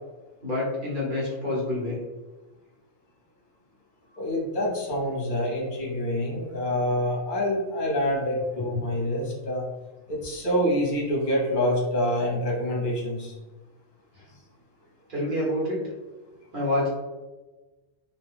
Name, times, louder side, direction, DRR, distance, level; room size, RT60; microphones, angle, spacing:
voice 1, 0.4-2.0 15.1-15.8 16.5-16.9, left 1 dB, 50° right, -6 dB, 1.3 m, -27 dB
voice 2, 4.1-9.6 10.1-13.3, equal, 50° left, -3 dB, 1.0 m, -26 dB
2.6 x 2.2 x 3.4 m, 1.2 s
omnidirectional pair, 1.1 m